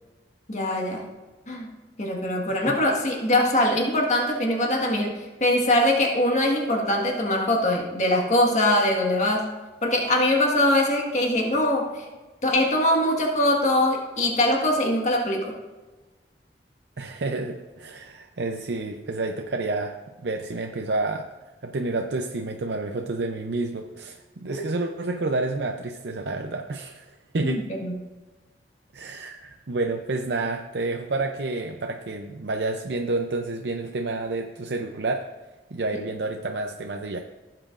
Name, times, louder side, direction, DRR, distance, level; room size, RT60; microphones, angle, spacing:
voice 1, 0.5-1.1 1.5-1.7 2.0-9.5 9.8-12.1 12.4-15.5 24.5-24.6 27.4-27.9, left 1 dB, 40° left, 1 dB, 1.6 m, -22 dB
voice 2, 17.0-21.3 21.6-27.7 28.9-35.2 35.7-37.2, right 2 dB, 70° right, 3 dB, 0.6 m, -29 dB
16.5 x 7.6 x 2.5 m, 1.2 s
head